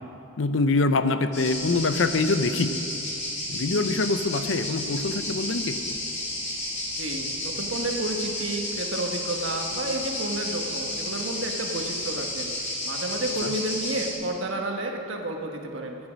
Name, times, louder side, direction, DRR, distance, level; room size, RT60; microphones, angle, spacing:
voice 1, 0.4-2.7 3.5-5.8 13.4-13.5, left 3 dB, 75° left, 10 dB, 0.6 m, -24 dB
sound 1, 1.3-14.1, left 1 dB, 40° left, 3.3 m, -32 dB
voice 2, 6.9-16.0, right 1 dB, 80° right, 3 dB, 1.3 m, -31 dB
13.5 x 9.5 x 6.2 m, 2.9 s
head